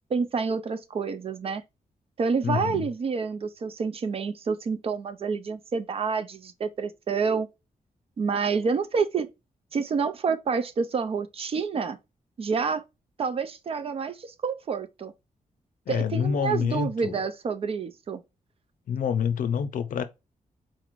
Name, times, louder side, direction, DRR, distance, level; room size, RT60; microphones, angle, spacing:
voice 1, 0.1-1.6 2.2-7.5 8.2-9.3 9.7-12.0 12.4-12.8 13.2-15.1 15.9-18.2, right 5 dB, 45° right, 0.4 m, -28 dB
voice 2, 2.4-2.9 15.9-17.2 18.9-20.0, left 7 dB, 75° left, 0.5 m, -27 dB
4.1 x 2.5 x 2.9 m
wide cardioid pair, 150°, 14 cm